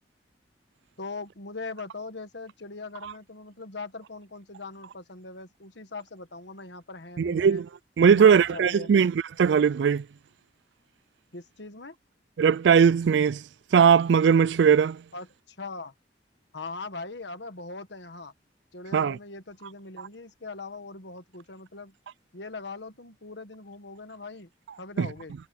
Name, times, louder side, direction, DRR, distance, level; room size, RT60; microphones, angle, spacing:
voice 1, 1.0-7.6 8.1-9.0 11.3-11.9 15.1-15.9 16.5-18.3 18.7-21.9 22.3-24.5 24.8-25.3, left 3 dB, 65° left, 1.6 m, -40 dB
voice 2, 7.2-7.7 8.0-10.0 12.4-13.4 13.7-15.0 18.9-19.2 25.0-25.1, right 7 dB, 70° right, 0.3 m, -19 dB
head